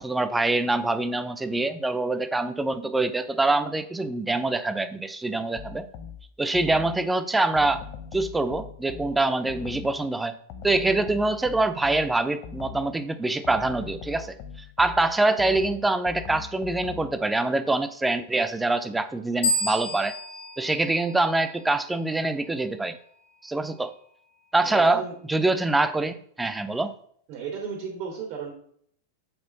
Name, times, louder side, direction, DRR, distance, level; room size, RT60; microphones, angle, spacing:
voice 1, 0.0-5.8 6.4-7.8 8.1-10.3 10.6-14.3 14.8-20.2 20.6-23.0 23.4-23.9 24.5-25.0 25.3-26.9, right 2 dB, 10° right, 12 dB, 0.7 m, -25 dB
sound 1, 5.5-7.1 7.5-10.0 10.5-13.0 13.4-17.2, left 8 dB, 50° left, 0.9 m, -41 dB
sound 2, 19.4-21.9, equal, 75° left, 2.5 m, -30 dB
voice 2, 24.6-25.1 27.3-28.5, right 6 dB, 50° right, 0 dB, 2.6 m, -34 dB
7.8 x 4.3 x 5.3 m, 0.63 s
hypercardioid pair, 100°, 0 cm